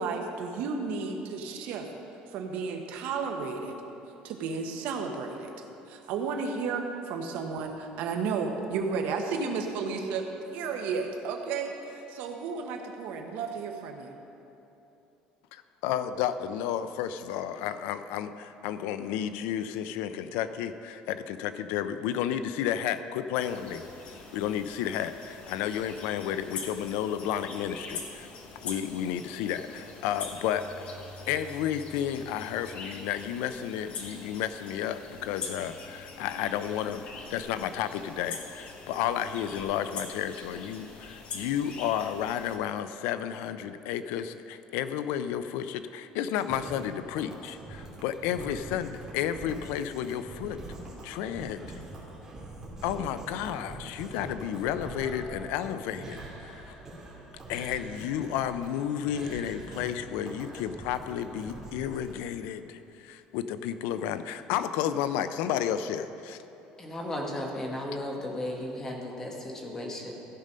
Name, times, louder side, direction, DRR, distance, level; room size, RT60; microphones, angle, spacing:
voice 1, 0.0-1.9 2.3-3.8 4.2-5.5 5.9-14.2, right 5 dB, 70° right, 4 dB, 1.0 m, -33 dB
voice 2, 15.5-23.8 24.3-28.3 28.6-30.7 31.3-37.0 37.3-50.6 51.0-51.8 52.8-56.7 57.5-66.4, left 10 dB, 90° left, 11 dB, 0.4 m, -32 dB
sound 1, 23.3-42.6, left 4 dB, 40° left, 1.0 m, -43 dB
sound 2, 46.3-62.1, right 2 dB, 15° right, 2.4 m, -43 dB
voice 3, 66.8-70.1, left 1 dB, 20° left, 0 dB, 1.3 m, -35 dB
15.0 x 5.2 x 5.5 m, 3.0 s
cardioid pair, 160°, 3 cm